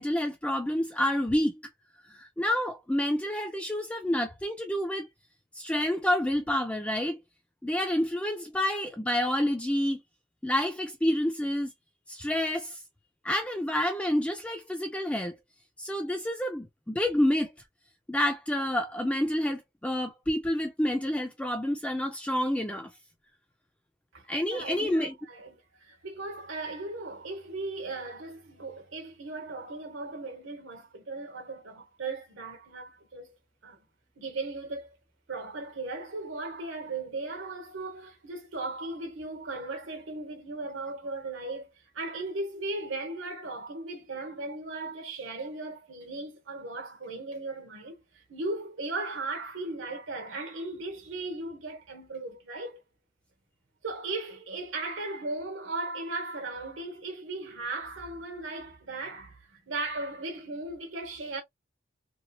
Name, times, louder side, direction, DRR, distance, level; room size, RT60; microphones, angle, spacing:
voice 1, 0.0-1.6 2.1-5.1 5.5-7.2 7.6-10.0 10.4-11.7 12.1-12.8 13.2-15.4 15.8-17.5 18.1-22.9 24.3-25.2, left 1 dB, 5° left, 0.4 m, -28 dB
voice 2, 24.1-33.4 33.6-33.8 34.2-35.0 35.3-52.8 53.8-61.4, right 2 dB, 75° right, 1.0 m, -37 dB
3.0 x 2.7 x 2.3 m
head